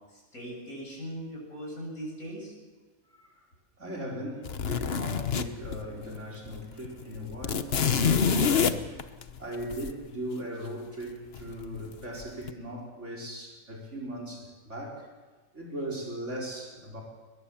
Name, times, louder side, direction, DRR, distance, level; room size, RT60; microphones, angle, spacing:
voice 1, 0.1-2.5, equal, 75° left, -1 dB, 8.2 m, -39 dB
voice 2, 3.8-8.8 9.4-15.1 15.5-17.0, equal, 55° right, 1 dB, 5.1 m, -38 dB
sound 1, 4.4-6.2 6.5-6.6 6.9-9.9 11.3-11.9 12.2-12.5, left 6 dB, 50° left, 1.2 m, -27 dB
22.0 x 21.5 x 7.2 m, 1.3 s
omnidirectional pair, 1.5 m